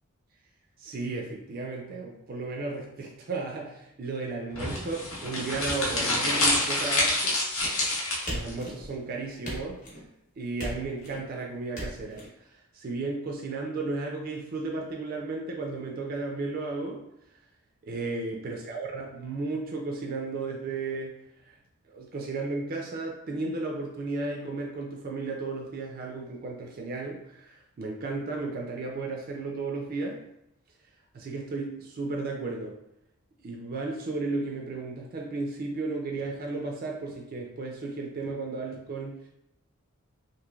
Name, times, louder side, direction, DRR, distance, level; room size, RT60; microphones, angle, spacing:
voice 1, 0.8-7.4 8.3-9.8 10.4-12.2 12.5-17.0 17.8-21.1 21.5-21.6 21.9-30.2 31.1-32.8 33.4-39.3, right 3 dB, 40° right, 0 dB, 0.3 m, -34 dB
sound 1, 4.5-8.5, left 2 dB, 70° left, 0.8 m, -27 dB
sound 2, 8.3-9.0 9.4-10.1 10.6-11.2 11.7-12.3, equal, 35° left, 0.8 m, -37 dB
3.0 x 2.5 x 2.3 m, 0.83 s
head